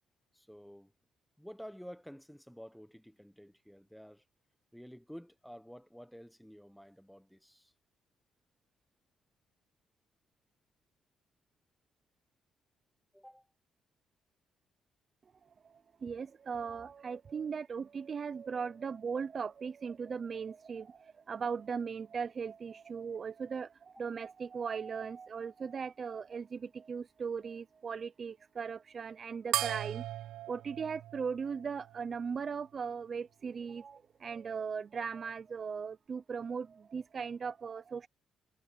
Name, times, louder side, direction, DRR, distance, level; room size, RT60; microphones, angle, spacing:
voice 1, 0.3-0.9 1.4-4.2 4.7-7.7 13.1-13.5, equal, ahead, 1.0 m, -51 dB
voice 2, 15.4-30.0 30.5-38.1, right 6 dB, 30° right, 0.4 m, -38 dB
sound 1, 29.5-32.3, right 13 dB, 85° right, 0.5 m, -38 dB
cardioid pair, 180°, 0 cm